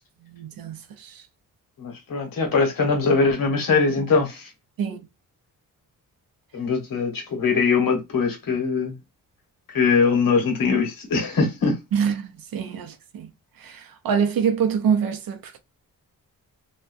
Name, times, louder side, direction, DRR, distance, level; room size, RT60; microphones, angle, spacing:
voice 1, 0.2-1.2 4.8-5.0 11.9-13.3 13.6-15.6, right 7 dB, 85° right, 0.8 m, -25 dB
voice 2, 1.8-4.5 6.5-9.0 9.7-11.8, left 4 dB, 80° left, 1.4 m, -22 dB
2.9 x 2.4 x 2.5 m
wide cardioid pair, 120°, 34 cm